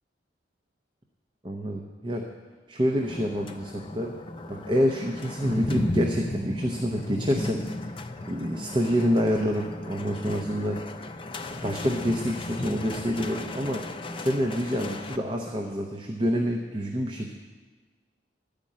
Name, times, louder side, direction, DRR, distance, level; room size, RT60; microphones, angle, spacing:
voice 1, 1.4-2.2 2.7-4.1 4.5-7.6 7.9-8.0 8.3-10.8 11.6-13.8 14.2-17.3, equal, 25° right, 2 dB, 0.7 m, -27 dB
sound 1, 2.9-15.2, left 2 dB, 30° left, 0.5 m, -35 dB
12.0 x 5.2 x 8.5 m, 1.4 s
head